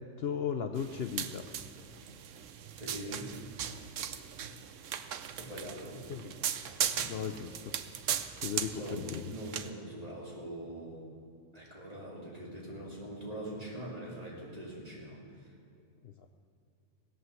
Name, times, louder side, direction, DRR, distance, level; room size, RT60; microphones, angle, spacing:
voice 1, 0.2-1.5 6.1-6.5 7.1-7.8 8.4-9.4 16.0-16.3, left 7 dB, 60° left, 7 dB, 0.8 m, -36 dB
sound 1, 0.8-9.7, right 9 dB, 75° right, 1.1 m, -38 dB
voice 2, 2.8-3.3 5.4-6.0 6.9-7.3 8.6-11.1 11.5-15.2, right 1 dB, 30° right, -4 dB, 3.4 m, -43 dB
17.5 x 8.3 x 7.5 m, 2.5 s
omnidirectional pair, 1.3 m